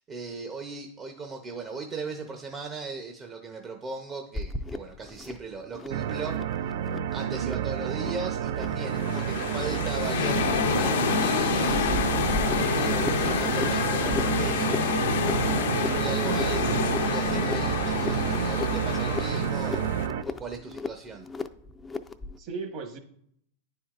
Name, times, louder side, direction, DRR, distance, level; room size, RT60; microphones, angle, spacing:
voice 1, 0.1-6.4 7.1-11.9 12.5-15.0 15.3-19.9 20.2-21.3, right 4 dB, 25° right, 3 dB, 0.6 m, -38 dB
sound 1, 4.3-22.4, left 3 dB, 15° left, 0.4 m, -38 dB
sound 2, 5.9-20.2, right 9 dB, 70° right, 0.4 m, -29 dB
voice 2, 7.2-7.6 16.2-16.4 22.4-23.0, right 5 dB, 45° right, 4 dB, 1.3 m, -36 dB
sound 3, 8.7-20.1, left 6 dB, 80° left, 0.6 m, -28 dB
9.6 x 4.4 x 2.5 m, 0.68 s
hypercardioid pair, 125°, 0 cm